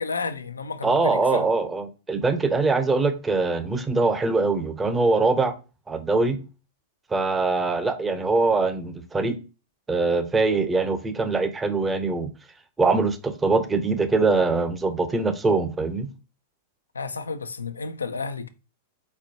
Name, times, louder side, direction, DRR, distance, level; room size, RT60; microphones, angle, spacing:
voice 1, 0.0-1.5 16.9-18.5, left 4 dB, 85° left, 0.4 m, -31 dB
voice 2, 0.8-5.5 5.9-6.4 7.1-9.4 9.9-12.3 12.8-16.1, right 3 dB, 15° right, 0.7 m, -23 dB
4.3 x 4.2 x 2.8 m
hypercardioid pair, 100°, 0 cm